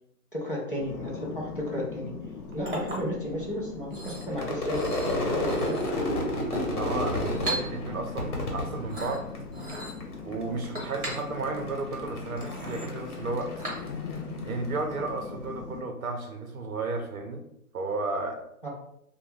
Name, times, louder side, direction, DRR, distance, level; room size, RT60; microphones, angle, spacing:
voice 1, 0.3-2.1 2.5-6.3 18.6-18.7, equal, 35° left, -4 dB, 0.5 m, -34 dB
sound 1, 0.8-15.8, left 4 dB, 85° left, 0.6 m, -40 dB
Chink clink, 2.2-14.2, right 1 dB, 35° right, 0.9 m, -40 dB
Crowd / Fireworks, 4.3-9.7 10.0-10.7 10.9-14.5, left 1 dB, 70° left, 1.0 m, -31 dB
voice 2, 6.7-9.3 10.2-13.5 14.5-17.4 17.7-18.4, right 3 dB, 65° right, 5 dB, 0.6 m, -33 dB
2.5 x 2.2 x 3.2 m, 0.73 s
hypercardioid pair, 180°, 46 cm